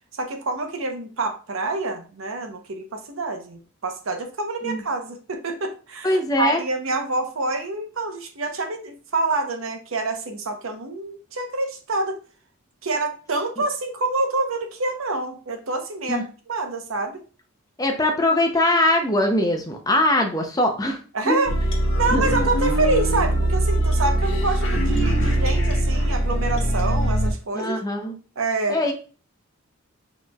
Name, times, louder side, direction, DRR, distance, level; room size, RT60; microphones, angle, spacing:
voice 1, 0.1-12.2 12.8-17.2 21.1-21.5 21.9-27.8 28.4-28.8, right 3 dB, 80° right, 5 dB, 0.8 m, -27 dB
voice 2, 6.0-6.6 16.1-16.2 17.8-21.0 21.2-21.4 22.1-22.2 27.6-28.2 28.7-28.9, left 1 dB, 20° left, 4 dB, 0.6 m, -21 dB
sound 1, 21.5-27.3, right 1 dB, 65° left, 1.1 m, -21 dB
6.4 x 3.0 x 2.3 m, 0.38 s
head